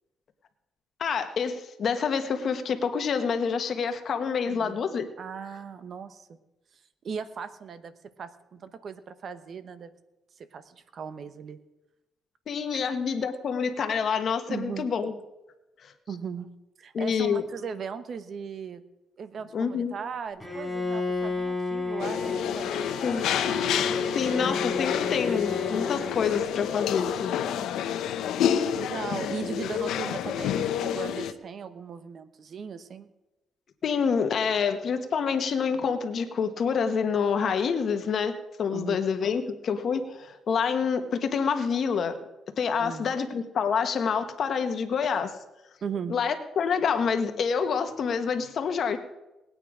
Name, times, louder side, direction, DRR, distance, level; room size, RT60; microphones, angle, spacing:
voice 1, 1.0-5.1 12.5-15.1 16.9-17.4 19.5-19.9 23.0-23.3 24.1-27.3 33.8-38.3 38.6-42.2 42.6-45.3 46.1-49.0, left 6 dB, 55° left, 7 dB, 1.4 m, -27 dB
voice 2, 4.5-4.8 5.2-6.3 7.0-7.9 8.2-9.9 10.4-11.6 12.7-12.8 14.5-14.9 16.1-16.5 16.8-18.8 19.2-23.0 28.7-33.1 38.7-39.0 42.8-43.1 45.8-46.2, right 6 dB, 55° right, 12 dB, 1.0 m, -38 dB
Bowed string instrument, 20.4-26.7, left 3 dB, 5° right, 5.2 m, -32 dB
sound 1, 22.0-31.3, left 9 dB, 85° left, 0.9 m, -29 dB
19.5 x 9.0 x 5.0 m, 1.0 s
cardioid pair, 90°, 0 cm